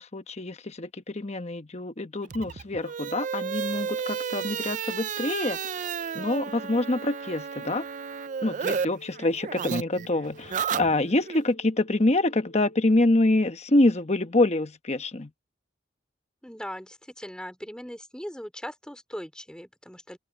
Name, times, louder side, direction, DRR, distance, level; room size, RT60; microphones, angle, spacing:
voice 1, 0.0-5.9 6.1-7.9 8.4-15.3, left 2 dB, 35° left, 1.0 m, -26 dB
sound 1, 2.2-8.9 9.1-11.4, right 6 dB, 40° right, 0.4 m, -32 dB
sound 2, 3.2-13.2, left 1 dB, 90° left, 4.4 m, -50 dB
voice 2, 16.4-20.2, equal, 5° left, 3.5 m, -39 dB
open air
head